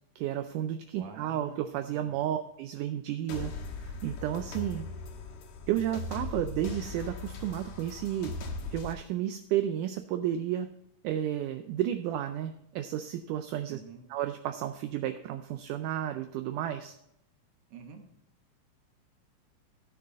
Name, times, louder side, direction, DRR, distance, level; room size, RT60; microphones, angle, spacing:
voice 1, 0.2-3.5 3.8-4.9 5.7-8.4 8.7-10.7 11.0-13.8 14.1-16.9, right 11 dB, 80° right, 8 dB, 2.0 m, -32 dB
voice 2, 0.9-2.3 13.7-14.0 17.7-18.0, right 4 dB, 55° right, 3 dB, 2.0 m, -48 dB
sound 1, 3.3-8.9, left 3 dB, 75° left, 2.8 m, -39 dB
13.5 x 6.4 x 4.1 m, 0.76 s
omnidirectional pair, 3.9 m